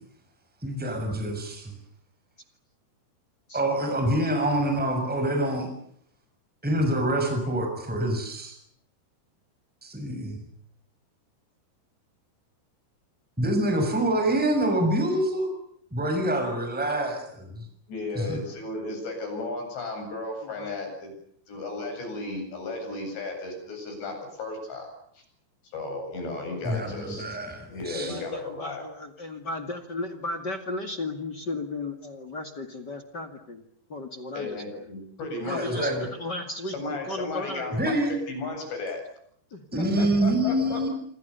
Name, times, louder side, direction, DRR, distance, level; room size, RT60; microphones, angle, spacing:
voice 1, 0.6-1.7 3.5-5.7 6.6-8.6 9.8-10.4 13.4-15.5 15.9-17.6 18.1-18.4 26.6-28.2 35.5-36.0 37.7-38.1 39.7-40.9, right 1 dB, ahead, 4 dB, 6.0 m, -26 dB
voice 2, 17.9-21.1 21.5-25.2 25.7-27.2 27.7-28.8 34.3-36.0 36.7-39.0 39.8-40.9, left 3 dB, 75° left, 4 dB, 10.5 m, -35 dB
voice 3, 28.0-33.6 33.9-34.9 35.4-36.7 37.1-37.8 39.5-40.2, left 2 dB, 35° left, 7 dB, 1.7 m, -35 dB
27.0 x 26.0 x 6.9 m, 0.68 s
omnidirectional pair, 5.0 m